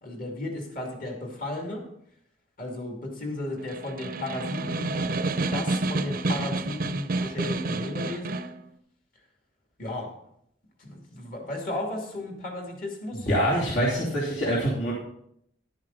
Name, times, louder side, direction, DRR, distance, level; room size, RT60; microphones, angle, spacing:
voice 1, 0.0-1.9 2.6-5.0 5.5-8.4 9.8-10.1 10.8-13.3, left 1 dB, 45° left, 1 dB, 2.5 m, -34 dB
Snare drum, 3.6-8.6, right 2 dB, 50° right, 0.6 m, -29 dB
voice 2, 13.1-14.9, equal, 70° left, -6 dB, 3.1 m, -25 dB
11.5 x 8.7 x 4.0 m, 0.72 s
head